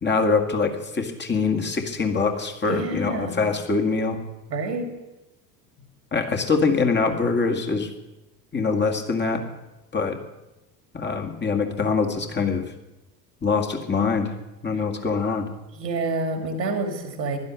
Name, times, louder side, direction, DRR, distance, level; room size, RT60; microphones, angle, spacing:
voice 1, 0.0-4.2 6.1-7.9 8.5-9.4 9.9-10.2 10.9-12.6 13.4-14.3 14.6-15.4, left 4 dB, 20° left, 4 dB, 2.1 m, -23 dB
voice 2, 2.6-3.5 4.5-4.9 15.7-17.4, right 3 dB, 80° right, 5 dB, 2.4 m, -28 dB
16.0 x 12.0 x 6.3 m, 0.99 s
figure-of-eight pair, 65°, 49 cm